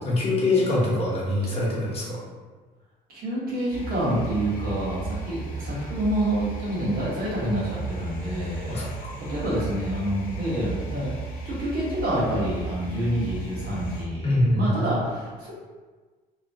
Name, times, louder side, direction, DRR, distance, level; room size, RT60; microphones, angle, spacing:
voice 1, 0.1-2.2 8.7-9.2 14.2-14.7, left 2 dB, 35° left, -5 dB, 0.9 m, -24 dB
voice 2, 3.1-8.9 9.2-11.1 11.4-15.5, equal, 65° right, -7 dB, 1.3 m, -27 dB
sound 1, 3.7-14.0, right 4 dB, 55° left, 0.6 m, -35 dB
3.0 x 2.2 x 2.7 m, 1.4 s
cardioid pair, 110°, 17 cm